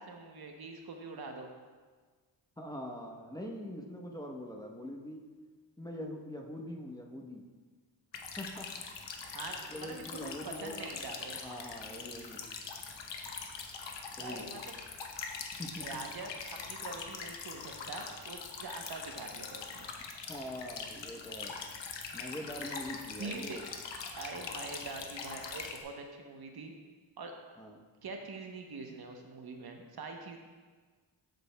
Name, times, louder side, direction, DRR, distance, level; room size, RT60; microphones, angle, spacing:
voice 1, 0.0-1.5 9.3-10.1 10.4-11.4 14.1-14.7 15.8-16.3 16.6-19.9 23.2-23.6 24.2-26.7 27.2-27.3 28.0-30.4, right 3 dB, 60° right, 3 dB, 0.9 m, -44 dB
voice 2, 2.6-5.3 5.8-7.4 8.4-8.9 9.7-11.0 11.4-12.4 14.2-14.5 15.4-15.9 20.3-21.5 22.1-23.6 27.6-27.8, left 1 dB, 10° left, 1 dB, 1.0 m, -43 dB
sound 1, 8.1-25.8, left 5 dB, 80° left, 0.9 m, -43 dB
15.0 x 5.1 x 2.2 m, 1.5 s
cardioid pair, 70°, 43 cm